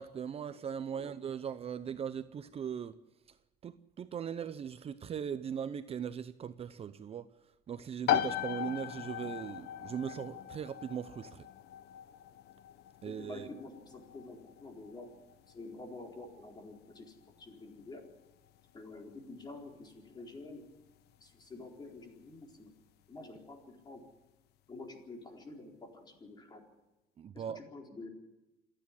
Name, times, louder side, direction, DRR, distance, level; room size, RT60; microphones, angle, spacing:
voice 1, 0.0-3.0 3.3-3.4 3.6-7.3 7.7-11.5 13.0-13.5 27.2-27.6, right 8 dB, 35° right, 0.7 m, -39 dB
sound 1, 8.1-22.6, left 11 dB, 80° left, 1.1 m, -40 dB
voice 2, 13.0-15.1 15.5-18.0 18.7-20.6 21.2-22.7 23.1-24.0 24.7-26.6 27.3-28.1, left 2 dB, 25° left, 4.2 m, -48 dB
27.0 x 10.0 x 10.0 m
cardioid pair, 135°, 17 cm